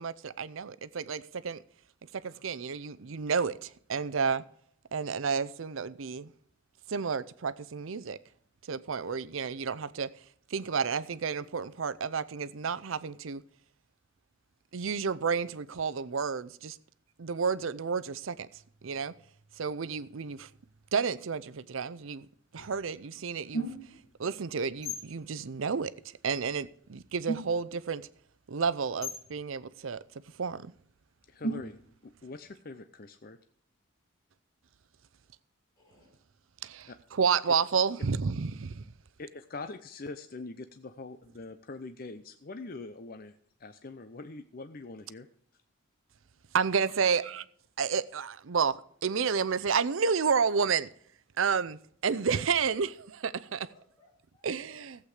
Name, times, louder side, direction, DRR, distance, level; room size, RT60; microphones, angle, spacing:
voice 1, 0.0-1.6 2.2-4.4 4.9-6.3 6.9-8.2 8.7-10.1 10.5-13.4 14.7-16.8 17.2-18.5 18.8-19.1 19.6-20.5 20.9-22.3 22.5-23.7 24.2-28.1 28.5-30.0 30.4-30.7 36.6-38.8 46.5-47.4 47.8-50.9 51.4-53.7 54.4-55.1, right 5 dB, 70° right, 0.6 m, -31 dB
sound 1, 22.6-22.8 23.5-24.1 24.7-25.1 26.7-26.8 27.0-27.8 29.0-29.4 31.4-32.0, right 1 dB, 85° left, 2.1 m, -36 dB
voice 2, 31.3-31.8 32.0-33.4 36.9-37.0 39.2-43.3 43.6-45.3, left 3 dB, 45° left, 0.6 m, -43 dB
voice 3, 35.8-36.1 52.6-52.8 53.7-55.1, left 2 dB, 20° left, 4.9 m, -63 dB
15.0 x 8.1 x 4.9 m
head